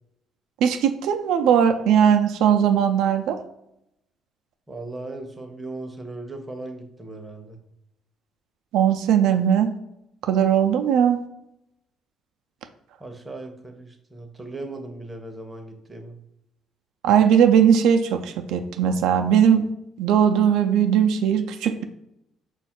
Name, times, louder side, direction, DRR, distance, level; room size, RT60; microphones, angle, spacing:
voice 1, 0.6-3.4 8.7-9.7 10.2-11.2 17.0-19.6 20.0-21.8, right 8 dB, 80° right, 6 dB, 0.4 m, -19 dB
voice 2, 4.7-7.6 13.0-16.2, right 2 dB, 10° right, 4 dB, 0.6 m, -37 dB
5.1 x 2.4 x 4.3 m, 0.84 s
cardioid pair, 135°, 0 cm